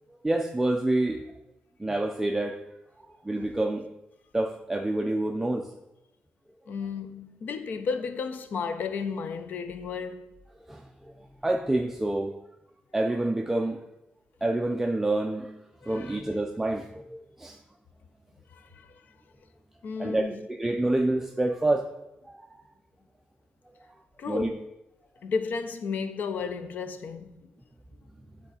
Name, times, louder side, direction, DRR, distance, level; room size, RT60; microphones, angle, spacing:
voice 1, 0.1-1.2 1.8-2.6 3.0-3.9 4.3-5.7 10.7-11.1 11.4-12.4 12.9-13.8 14.4-15.6 15.9-17.6 20.0-21.9 22.3-22.5 24.3-24.5, right 2 dB, 10° right, 0.4 m, -28 dB
voice 2, 6.7-10.3 15.8-16.2 18.5-19.0 19.8-20.5 24.2-24.7 25.2-27.5, left 5 dB, 60° left, 0.6 m, -33 dB
9.7 x 3.7 x 4.1 m
wide cardioid pair, 140°, 3 cm